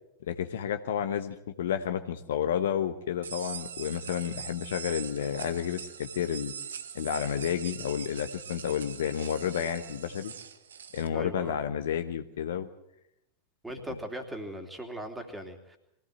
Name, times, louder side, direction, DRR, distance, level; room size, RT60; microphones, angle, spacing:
voice 1, 0.3-6.5 6.9-10.3 10.9-12.7, left 9 dB, 60° left, 9 dB, 1.1 m, -31 dB
sound 1, 3.2-11.1, right 7 dB, 65° right, 1.1 m, -42 dB
voice 2, 11.1-11.5 13.6-15.8, right 1 dB, 5° right, 4 dB, 3.0 m, -39 dB
23.0 x 17.0 x 7.8 m, 0.83 s
figure-of-eight pair, 90°, 0 cm